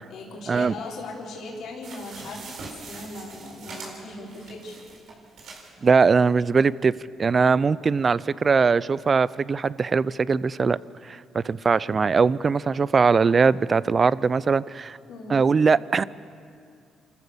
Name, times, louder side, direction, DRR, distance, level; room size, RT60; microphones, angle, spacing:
voice 1, 0.1-4.7 15.1-15.4, left 2 dB, 70° left, -3 dB, 3.9 m, -38 dB
sound 1, 1.8-5.7 6.2-6.3 6.5-6.6, right 3 dB, 75° right, 4.4 m, -42 dB
voice 2, 5.8-10.8 11.0-15.0 15.3-16.0, right 5 dB, 40° right, 20 dB, 0.4 m, -21 dB
28.0 x 14.0 x 7.0 m, 2.4 s
cardioid pair, 90°, 0 cm